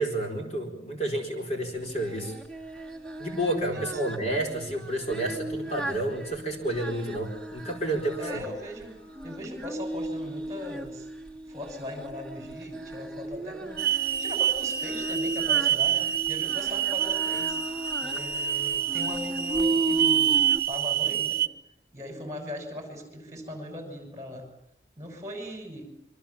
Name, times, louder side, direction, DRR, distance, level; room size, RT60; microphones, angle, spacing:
voice 1, 0.0-2.3 3.2-8.2, right 1 dB, 35° left, 1 dB, 4.3 m, -30 dB
Singing, 1.8-20.6, right 2 dB, 5° left, 2.6 m, -36 dB
voice 2, 3.7-4.1 8.2-9.0 9.2-11.1 11.5-17.6 18.0-21.5 21.9-24.5 25.0-25.9, left 1 dB, 20° right, 4 dB, 6.3 m, -39 dB
Hiss / Alarm, 13.8-21.5, right 9 dB, 55° right, 1.0 m, -27 dB
26.5 x 24.5 x 7.3 m, 0.78 s
head